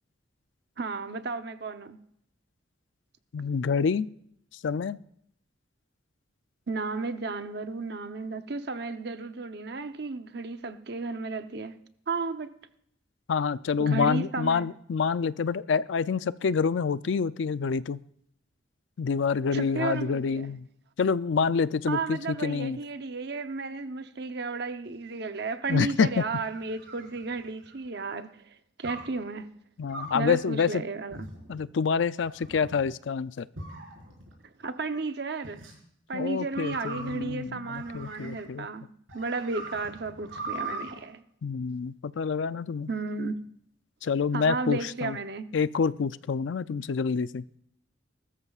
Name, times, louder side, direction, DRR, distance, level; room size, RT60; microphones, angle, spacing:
voice 1, 0.8-2.0 6.7-11.8 12.1-12.5 13.8-14.7 19.5-20.5 21.9-29.5 30.1-31.3 34.6-35.7 36.1-41.2 42.9-43.5 44.3-45.5, right 3 dB, 55° right, 0.8 m, -33 dB
voice 2, 3.3-4.1 4.6-5.0 13.3-18.0 19.0-20.7 21.0-22.8 25.7-26.2 29.8-30.8 31.5-33.5 36.1-38.7 41.4-42.9 44.0-45.2 45.5-47.4, left 5 dB, 70° left, 0.4 m, -27 dB
sound 1, 26.1-27.8 28.8-29.2 29.9-30.3 31.1-31.6 32.2-32.9 33.6-34.3 35.4-35.7 36.5-38.6 39.1-40.9, right 2 dB, 90° right, 4.7 m, -41 dB
20.5 x 13.5 x 2.4 m
head